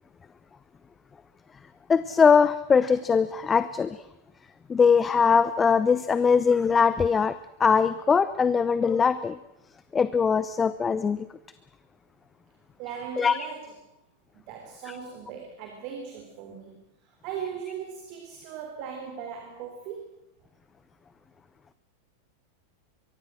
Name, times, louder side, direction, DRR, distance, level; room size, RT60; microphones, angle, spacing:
voice 1, 1.9-4.0 4.7-7.3 7.6-9.4 9.9-11.2 13.2-13.4 14.9-15.0, left 6 dB, 20° left, 15 dB, 0.8 m, -21 dB
voice 2, 12.8-13.8 14.3-16.8 17.2-20.0, right 7 dB, 45° right, 4 dB, 3.6 m, -38 dB
24.0 x 23.0 x 6.3 m, 0.85 s
figure-of-eight pair, 90°, 0 cm